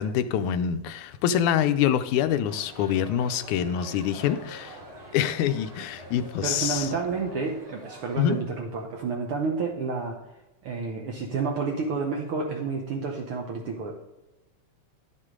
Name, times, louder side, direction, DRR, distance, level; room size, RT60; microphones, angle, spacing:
voice 1, 0.0-4.8 5.1-6.9 8.2-8.4, left 9 dB, 90° left, 10 dB, 2.0 m, -25 dB
sound 1, 1.1-7.6, left 6 dB, 70° left, 1.3 m, -51 dB
sound 2, 2.5-8.3, right 2 dB, 45° right, 1.4 m, -46 dB
voice 2, 6.4-10.2 10.6-13.9, right 4 dB, 70° right, 1 dB, 1.3 m, -30 dB
10.5 x 6.4 x 3.7 m, 1.0 s
omnidirectional pair, 3.4 m